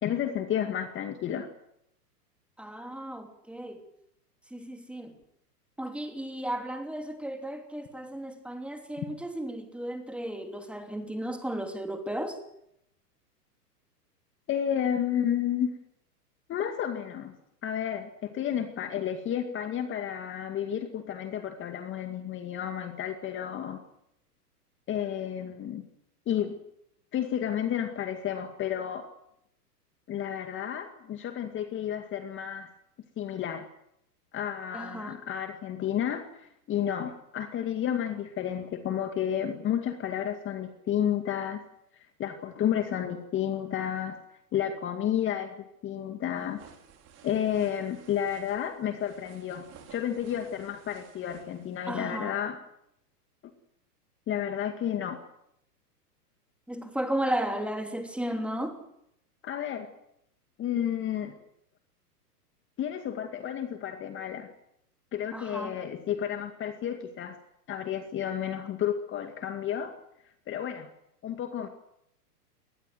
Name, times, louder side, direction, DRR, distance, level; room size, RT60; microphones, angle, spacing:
voice 1, 0.0-1.5 14.5-15.7 16.5-17.3 17.6-23.8 24.9-25.8 26.3-26.5 27.1-29.1 30.1-32.7 33.2-33.7 34.3-41.6 41.9-44.2 44.5-46.6 47.2-52.6 54.3-55.2 59.4-59.9 60.6-61.3 62.8-64.5 65.1-67.4 67.7-69.9 70.5-70.9 71.2-71.7, left 9 dB, 25° left, 2.2 m, -31 dB
voice 2, 2.6-3.8 4.5-5.1 5.8-12.4 34.7-35.2 51.9-52.4 56.7-58.8 65.3-65.7, right 1 dB, ahead, 3.0 m, -34 dB
sound 1, 46.4-52.2, right 7 dB, 30° right, 5.5 m, -55 dB
22.5 x 19.5 x 7.9 m
hypercardioid pair, 120°, 48 cm